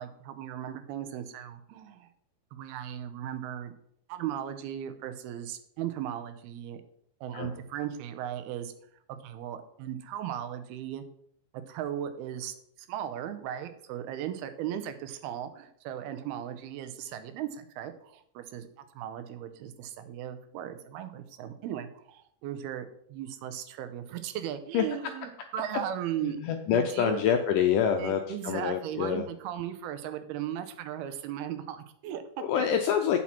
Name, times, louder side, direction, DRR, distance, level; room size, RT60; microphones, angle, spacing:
voice 1, 0.0-2.1 2.5-3.7 4.1-6.8 7.2-8.7 9.1-11.0 11.7-12.5 12.9-18.7 18.9-26.4 26.6-27.2 28.0-32.2 32.6-32.7, right 10 dB, 90° right, 10 dB, 2.7 m, -37 dB
voice 2, 26.2-29.3 32.4-33.2, left 8 dB, 80° left, 5 dB, 1.9 m, -26 dB
8.4 x 7.4 x 4.4 m, 0.69 s
omnidirectional pair, 4.4 m